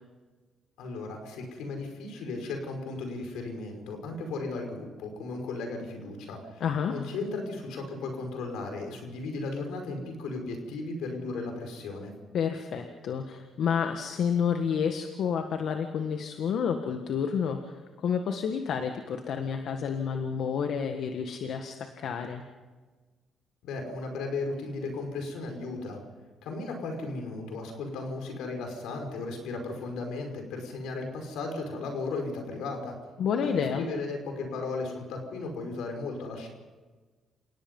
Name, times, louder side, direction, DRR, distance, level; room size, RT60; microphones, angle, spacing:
voice 1, 0.8-12.1 23.6-26.0 26.4-33.0 33.4-36.5, left 3 dB, 90° left, 4 dB, 5.4 m, -35 dB
voice 2, 6.6-6.9 12.3-22.4 33.2-33.8, left 7 dB, 70° left, 5 dB, 1.6 m, -30 dB
28.5 x 18.0 x 5.5 m, 1.3 s
cardioid pair, 90°, 0 cm